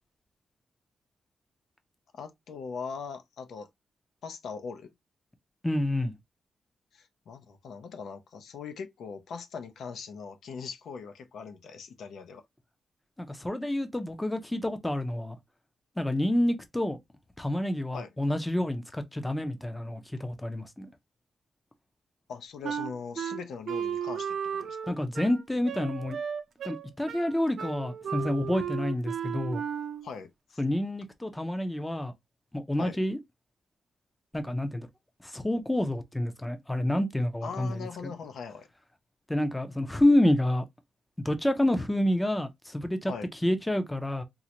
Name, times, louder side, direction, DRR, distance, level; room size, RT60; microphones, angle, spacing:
voice 1, 2.1-3.7 4.2-4.9 6.9-12.4 17.9-18.1 22.3-25.0 30.0-30.6 32.8-33.0 37.4-38.7 43.1-43.3, left 5 dB, 85° left, 0.5 m, -40 dB
voice 2, 5.6-6.1 13.2-15.4 16.0-17.0 17.4-20.9 24.9-26.2 26.6-29.6 30.6-32.1 32.5-33.2 34.3-34.9 35.2-37.7 38.0-38.1 39.3-40.6 41.2-43.1 43.4-44.2, left 1 dB, 10° left, 0.4 m, -28 dB
Wind instrument woodwind instrument, 22.6-30.1, right 8 dB, 70° right, 0.5 m, -35 dB
3.7 x 2.1 x 2.8 m
wide cardioid pair, 155°, 0 cm